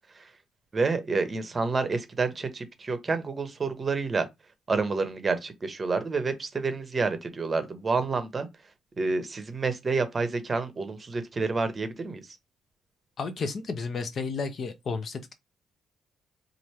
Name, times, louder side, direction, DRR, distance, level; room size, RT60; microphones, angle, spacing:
voice 1, 0.7-4.2 4.7-8.5 9.0-12.2, right 4 dB, 30° right, 0.8 m, -28 dB
voice 2, 13.2-15.3, left 4 dB, 50° left, 0.7 m, -32 dB
3.1 x 2.5 x 4.3 m
cardioid pair, 110°, 0 cm